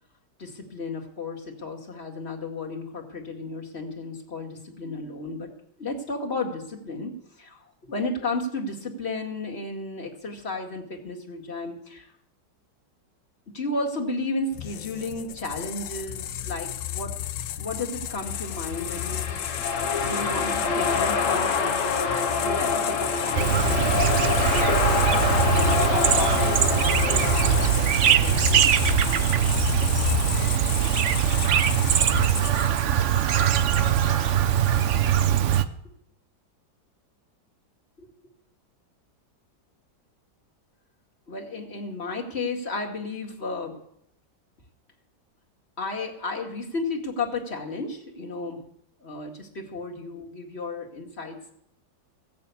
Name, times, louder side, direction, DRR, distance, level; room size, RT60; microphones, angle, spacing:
voice 1, 0.4-5.5 5.8-7.1 7.4-12.1 13.5-17.1 17.6-19.3 20.0-24.0 24.9-29.3 38.0-38.1 41.3-43.8 45.8-48.6 49.0-51.5, left 3 dB, 35° left, 0 dB, 2.2 m, -33 dB
sound 1, 14.5-32.9, left 12 dB, 80° left, 1.5 m, -31 dB
sound 2, 18.4-28.2, left 5 dB, 50° left, 1.1 m, -26 dB
Chirp tweet, 23.3-35.6, right 10 dB, 65° right, 0.7 m, -22 dB
16.0 x 6.8 x 8.3 m, 0.73 s
omnidirectional pair, 2.0 m